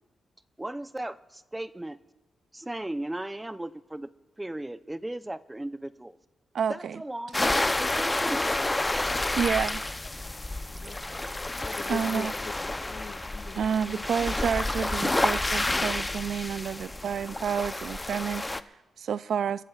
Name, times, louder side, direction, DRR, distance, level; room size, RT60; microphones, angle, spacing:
voice 1, 0.6-2.0 2.5-4.1 4.4-6.2 6.7-8.5, right 1 dB, 15° right, 0.7 m, -36 dB
voice 2, 6.5-7.0 9.4-9.9 11.9-12.3 13.6-19.6, right 7 dB, 75° right, 0.4 m, -30 dB
sound 1, 7.3-18.6, left 2 dB, 20° left, 0.7 m, -29 dB
voice 3, 11.6-14.1, left 6 dB, 75° left, 1.9 m, -43 dB
29.0 x 14.0 x 2.4 m
supercardioid pair, 50°, 0 cm